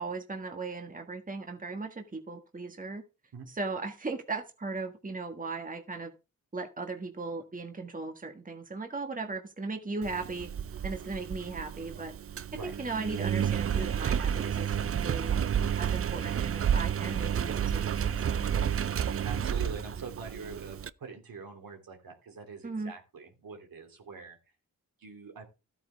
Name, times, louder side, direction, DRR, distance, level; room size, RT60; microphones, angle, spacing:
voice 1, 0.0-3.0 3.5-6.1 6.5-10.5 10.8-12.1 12.6-14.8 15.0-15.3 15.8-18.7 22.6-22.9, right 3 dB, 25° right, 5 dB, 1.5 m, -37 dB
Engine, 10.0-20.9, right 8 dB, 40° right, 0.5 m, -31 dB
voice 2, 19.2-24.4 25.0-25.5, right 4 dB, 75° right, 3 dB, 3.1 m, -43 dB
13.0 x 8.8 x 3.5 m, 0.29 s
cardioid pair, 80°, 35 cm